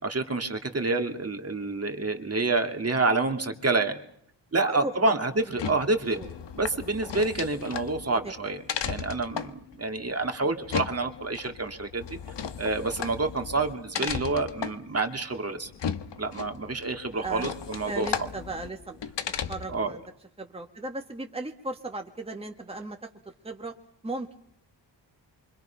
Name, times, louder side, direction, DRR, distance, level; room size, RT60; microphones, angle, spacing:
voice 1, 0.0-4.0 4.5-6.2 6.6-8.6 8.8-12.2 12.6-15.7 16.2-18.1 19.7-19.9, right 3 dB, 35° right, 6 dB, 2.4 m, -28 dB
voice 2, 4.6-5.1 5.5-5.8 6.2-6.3 10.4-10.5 14.0-14.1 17.1-17.5 17.9-19.0 19.5-20.0 20.4-23.7 24.0-24.4, right 2 dB, 15° right, 3 dB, 1.9 m, -37 dB
sound 1, 5.4-19.9, left 7 dB, 75° left, 1.5 m, -36 dB
28.5 x 25.0 x 5.8 m, 0.67 s
wide cardioid pair, 125°, 43 cm